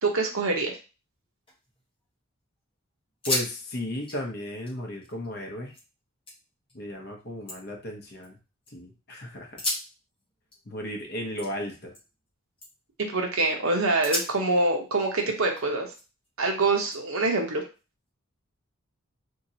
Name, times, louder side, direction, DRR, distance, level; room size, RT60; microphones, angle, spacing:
voice 1, 0.0-0.7 13.0-15.9 16.4-17.6, right 3 dB, 75° right, 2 dB, 0.8 m, -25 dB
sound 1, 1.2-2.2 2.6-2.7 3.1-3.5 3.8-5.8 6.3-6.8 7.2-8.7 9.4-12.3 12.6-13.0 13.4-13.6 14.0-16.3 16.9-18.1, left 1 dB, 25° left, 1.0 m, -37 dB
voice 2, 3.3-5.7 6.7-8.4 8.7-9.6 10.7-11.9, left 1 dB, 45° left, 2 dB, 0.8 m, -35 dB
2.9 x 2.8 x 2.7 m, 0.31 s
head